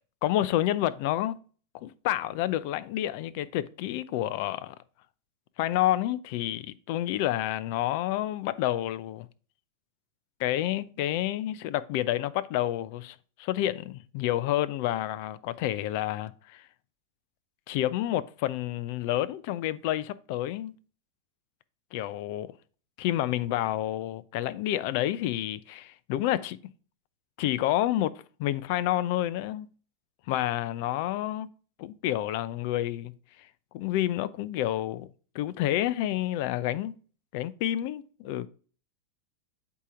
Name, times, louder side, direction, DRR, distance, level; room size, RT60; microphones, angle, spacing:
voice 1, 0.2-1.4 1.7-4.7 5.6-9.3 10.4-16.6 17.7-20.7 21.9-22.5 23.0-26.6 27.4-29.7 30.3-31.5 31.8-33.1 33.7-35.1 35.3-36.9 37.3-38.5, left 13 dB, 55° left, 0.5 m, -29 dB
8.2 x 3.0 x 5.1 m
hypercardioid pair, 125°, 0 cm